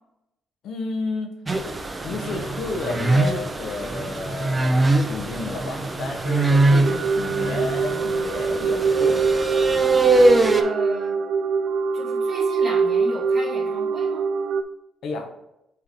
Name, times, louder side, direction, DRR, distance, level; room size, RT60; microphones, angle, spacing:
voice 1, 0.6-1.4 2.0-9.3 15.0-15.3, left 3 dB, 75° left, 3 dB, 1.1 m, -31 dB
sound 1, 1.5-10.6, right 2 dB, 25° right, 0.7 m, -22 dB
sound 2, 6.8-14.6, right 5 dB, 60° right, 0.4 m, -23 dB
voice 2, 10.6-11.2 11.9-14.2, right 1 dB, 45° right, -7 dB, 2.3 m, -35 dB
7.7 x 3.4 x 3.7 m, 0.86 s
cardioid pair, 90°, 0 cm